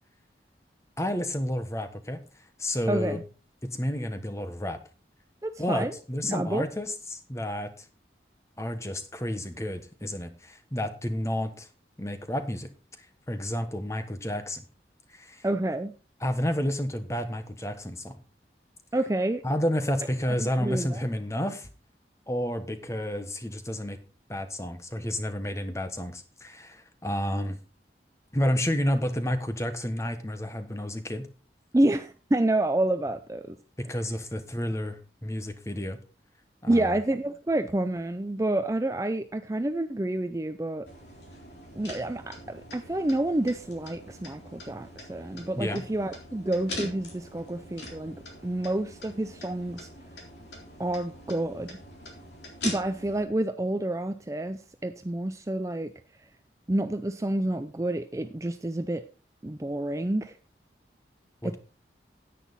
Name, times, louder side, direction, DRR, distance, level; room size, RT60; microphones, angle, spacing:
voice 1, 1.0-2.2 2.6-3.2 3.6-4.8 5.6-7.8 8.6-11.7 12.0-12.7 13.0-14.6 15.1-15.4 16.2-18.2 19.4-21.7 22.3-24.0 24.3-27.6 28.3-31.3 33.8-36.0 36.6-37.0 45.6-45.8 61.4-61.6, equal, 15° left, 9 dB, 1.2 m, -30 dB
voice 2, 2.9-3.2 5.4-5.9 6.3-6.7 15.4-15.9 18.9-19.4 20.4-21.0 31.7-33.6 36.7-40.9 41.7-48.2 48.4-49.9 50.8-51.7 52.6-55.9 56.7-59.0 59.4-60.3 61.4-61.6, right 1 dB, 15° right, 9 dB, 0.4 m, -28 dB
sound 1, 40.9-53.2, left 1 dB, 80° left, 3.9 m, -43 dB
10.0 x 9.2 x 4.1 m, 0.34 s
head